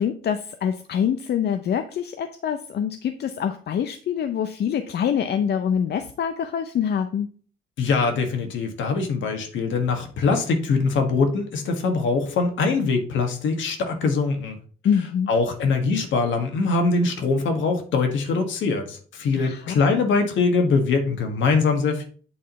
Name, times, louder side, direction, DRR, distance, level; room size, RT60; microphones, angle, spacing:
voice 1, 0.0-7.3 14.8-15.3 19.4-19.8, left 8 dB, 55° left, 8 dB, 0.6 m, -25 dB
voice 2, 7.8-14.6 15.3-22.1, left 4 dB, 75° left, 5 dB, 1.5 m, -22 dB
8.7 x 3.7 x 4.3 m, 0.43 s
cardioid pair, 90°, 20 cm